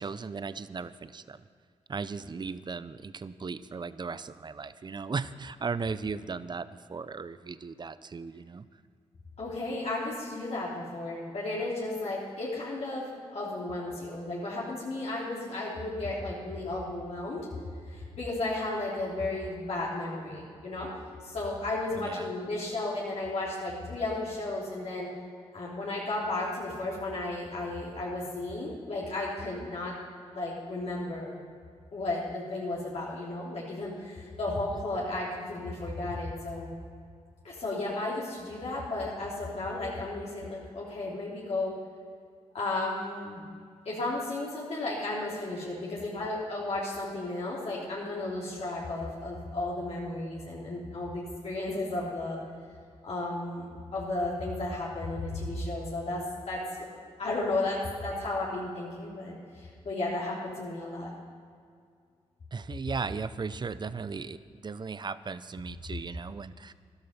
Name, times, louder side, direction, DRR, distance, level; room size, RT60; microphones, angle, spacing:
voice 1, 0.0-1.4 1.9-8.6 22.0-22.2 62.5-66.7, right 5 dB, 40° right, 15 dB, 0.6 m, -37 dB
voice 2, 9.4-17.5 17.9-20.9 21.2-25.1 25.5-30.0 30.3-31.4 31.9-36.7 37.4-41.7 42.5-43.4 43.8-52.4 53.0-56.6 56.9-61.1, left 2 dB, 65° left, -6 dB, 3.2 m, -34 dB
13.0 x 12.0 x 5.7 m, 2.2 s
cardioid pair, 60°, 12 cm